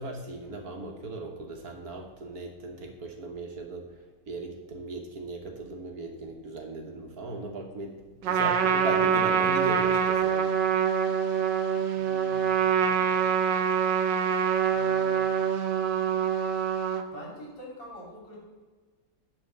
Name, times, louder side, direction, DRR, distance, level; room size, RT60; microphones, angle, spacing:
voice 1, 0.0-3.9 4.3-7.9 8.3-10.5, right 2 dB, 60° right, 3 dB, 1.5 m, -37 dB
Trumpet, 8.2-17.0, right 7 dB, 75° right, 1.4 m, -25 dB
voice 2, 12.0-13.3 14.7-15.3 17.1-18.5, equal, 75° left, -2 dB, 3.4 m, -45 dB
10.5 x 4.4 x 6.7 m, 1.4 s
omnidirectional pair, 1.9 m